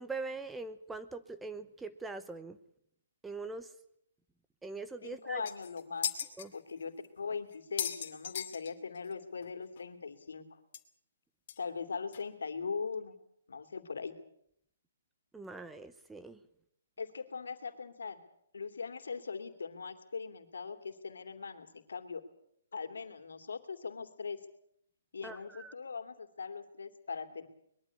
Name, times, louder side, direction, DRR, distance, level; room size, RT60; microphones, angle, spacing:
voice 1, 0.0-2.6 3.2-3.7 4.6-5.4 6.4-6.5 15.3-16.4 25.2-25.7, right 3 dB, 5° right, 11 dB, 0.8 m, -42 dB
voice 2, 5.0-6.1 6.5-10.6 11.6-13.2 13.5-14.1 17.0-18.2 18.5-22.2 22.7-24.4 25.1-27.5, left 5 dB, 85° left, 7 dB, 2.7 m, -40 dB
sound 1, 5.1-5.2 5.5-6.5 7.0-7.1 7.5-9.1 9.4-9.5 9.8-9.9 10.7-10.8 11.5-11.6 12.1-12.2, left 9 dB, 50° left, 2.5 m, -37 dB
22.0 x 12.5 x 9.7 m, 0.71 s
hypercardioid pair, 150°, 0 cm